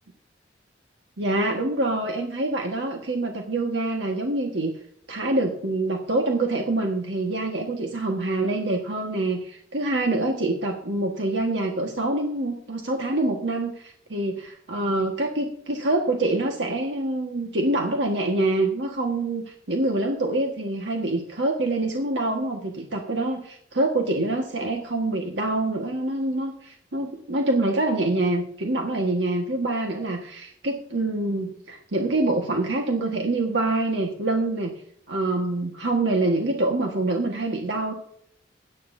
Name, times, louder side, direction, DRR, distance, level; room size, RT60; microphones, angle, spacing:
voice 1, 1.2-4.7 5.1-34.7 35.1-37.9, right 2 dB, 80° right, 1 dB, 1.6 m, -25 dB
17.0 x 11.5 x 2.7 m, 0.64 s
head